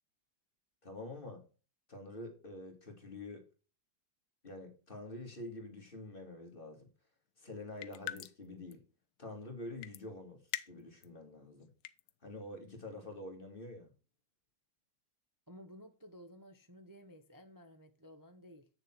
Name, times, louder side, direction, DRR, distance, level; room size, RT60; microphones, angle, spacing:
voice 1, 0.8-1.4 1.9-3.5 4.4-6.9 7.4-8.8 9.2-11.7 12.2-13.9, left 2 dB, 30° left, 2.1 m, -47 dB
sound 1, 7.8-8.5 8.7-8.8 9.8-10.0 10.5-11.1 11.6-12.1, left 13 dB, 75° left, 1.1 m, -41 dB
voice 2, 15.5-18.7, equal, 35° right, 0.3 m, -55 dB
8.6 x 6.7 x 4.4 m
omnidirectional pair, 2.0 m